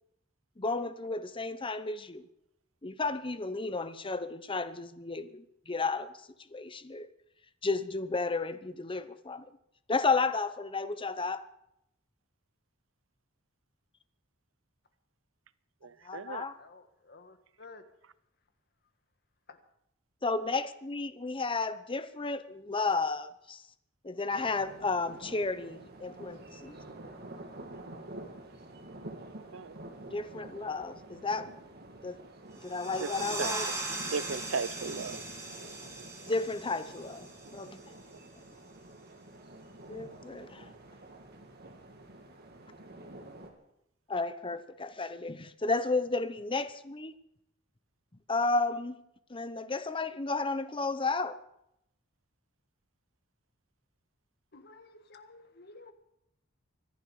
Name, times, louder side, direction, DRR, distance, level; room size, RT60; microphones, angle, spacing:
voice 1, 0.6-2.3 2.8-6.1 6.5-7.1 7.6-9.5 9.9-11.4 16.0-16.6 20.2-23.6 24.0-26.8 30.1-31.5 32.0-32.2 32.6-33.7 36.2-37.8 39.9-40.7 44.1-47.1 48.3-49.0 49.3-51.4, left 3 dB, 25° left, 0.9 m, -32 dB
voice 2, 15.8-16.4 29.5-29.7 33.0-33.1 33.4-33.5 34.1-35.2, right 5 dB, 80° right, 0.7 m, -35 dB
voice 3, 16.6-17.9 19.5-19.6 54.5-55.9, left 3 dB, 55° left, 1.6 m, -53 dB
sound 1, 24.3-43.5, right 2 dB, 55° right, 2.6 m, -48 dB
sound 2, 32.6-37.9, right 2 dB, 15° right, 3.8 m, -39 dB
24.5 x 11.0 x 4.9 m
head